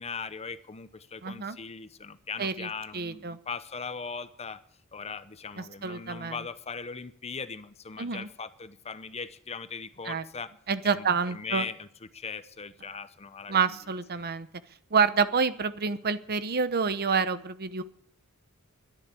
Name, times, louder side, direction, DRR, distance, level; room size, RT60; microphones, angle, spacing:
voice 1, 0.0-4.6 4.9-10.5 10.8-11.9 12.1-13.8 14.2-14.3, left 5 dB, 30° left, 13 dB, 0.8 m, -39 dB
voice 2, 1.2-1.6 2.4-3.4 5.8-6.4 8.0-8.3 10.0-10.2 10.7-11.6 13.5-14.5 14.9-17.8, right 5 dB, 45° right, 13 dB, 0.9 m, -28 dB
11.5 x 10.5 x 9.8 m, 0.65 s
head